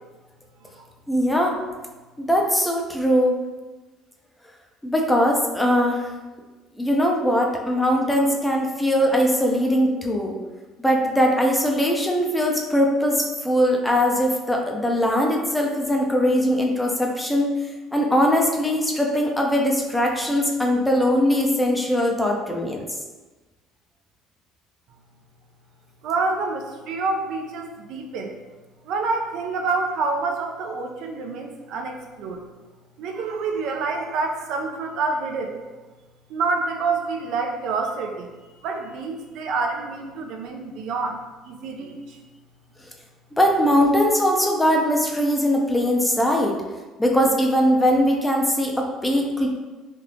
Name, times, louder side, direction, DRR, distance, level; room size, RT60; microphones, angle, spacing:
voice 1, 1.1-1.6 2.2-3.4 4.8-6.1 6.8-10.4 10.8-17.5 17.9-22.9 43.4-46.6 47.0-49.5, equal, 10° left, 0 dB, 0.5 m, -21 dB
voice 2, 26.0-28.3 28.9-32.4 33.0-35.6 36.3-38.3 38.6-42.2, right 4 dB, 70° right, 3 dB, 0.4 m, -27 dB
3.3 x 2.8 x 2.6 m, 1.2 s
cardioid pair, 110°, 0 cm